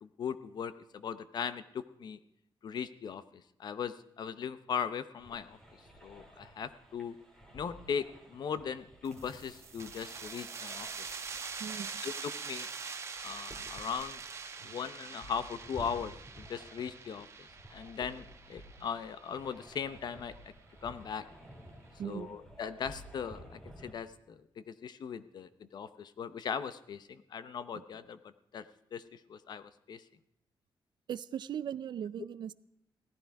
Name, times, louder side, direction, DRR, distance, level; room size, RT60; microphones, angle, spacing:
voice 1, 0.0-2.2 2.6-5.6 6.0-7.1 7.5-11.1 12.0-12.7 13.2-14.2 14.6-20.5 20.8-21.2 22.0-28.6 28.9-30.0, left 7 dB, 55° left, 13 dB, 0.8 m, -39 dB
sound 1, 5.2-23.9, equal, 10° left, 2.6 m, -54 dB
sound 2, 9.1-20.4, right 5 dB, 35° right, 1.2 m, -44 dB
voice 2, 11.6-12.0 14.6-14.7 22.0-22.4 31.1-32.5, right 9 dB, 60° right, 17 dB, 0.5 m, -39 dB
17.0 x 14.0 x 4.8 m, 0.79 s
wide cardioid pair, 175°, 8 cm